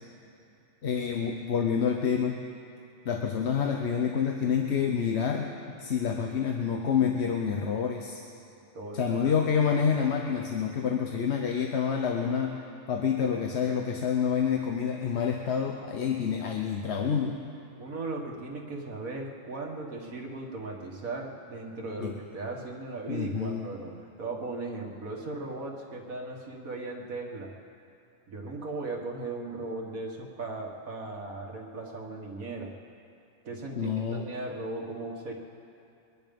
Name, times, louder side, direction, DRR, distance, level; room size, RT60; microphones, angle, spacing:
voice 1, 0.8-2.4 3.0-5.5 5.8-8.2 8.9-12.6 12.9-17.4 22.0-22.1 23.1-23.7 33.8-34.2, left 7 dB, 55° left, 2 dB, 1.1 m, -28 dB
voice 2, 8.7-9.3 17.8-27.5 28.3-32.8 33.4-35.3, right 2 dB, 90° right, 0 dB, 2.2 m, -37 dB
23.5 x 10.5 x 5.3 m, 2.7 s
omnidirectional pair, 1.4 m